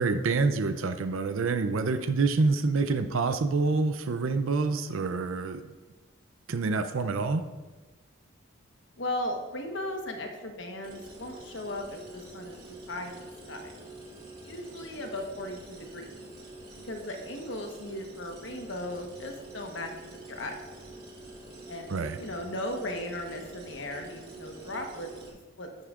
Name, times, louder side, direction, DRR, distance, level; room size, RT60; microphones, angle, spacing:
voice 1, 0.0-5.6 6.5-7.4 21.9-22.2, right 3 dB, 80° right, 9 dB, 0.5 m, -27 dB
voice 2, 9.0-12.5 12.9-13.7 14.4-16.1 16.8-20.6 21.7-25.1 25.6-25.7, left 1 dB, 65° left, 3 dB, 1.2 m, -37 dB
sound 1, 10.8-25.3, right 2 dB, 30° right, 2.7 m, -46 dB
10.5 x 10.0 x 2.5 m, 1.2 s
head